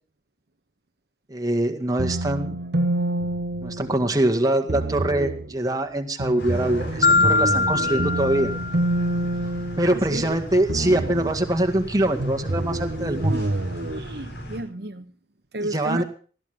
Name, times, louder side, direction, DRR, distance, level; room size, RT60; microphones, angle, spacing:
voice 1, 1.3-2.6 3.6-8.5 9.8-13.5 15.6-16.0, right 1 dB, 20° right, 4 dB, 1.9 m, -23 dB
sound 1, 2.0-4.2 4.7-5.5 6.2-10.3 10.7-11.5 12.2-14.0, right 1 dB, 80° right, 1.4 m, -27 dB
sound 2, 6.4-14.6, equal, 75° left, 5.0 m, -37 dB
Marimba xylophone, 7.0-9.2, left 3 dB, 50° left, 0.8 m, -22 dB
voice 2, 9.8-10.4 13.9-15.0 15.5-16.0, right 1 dB, 65° right, 7 dB, 1.2 m, -32 dB
20.5 x 13.5 x 3.7 m, 0.39 s
head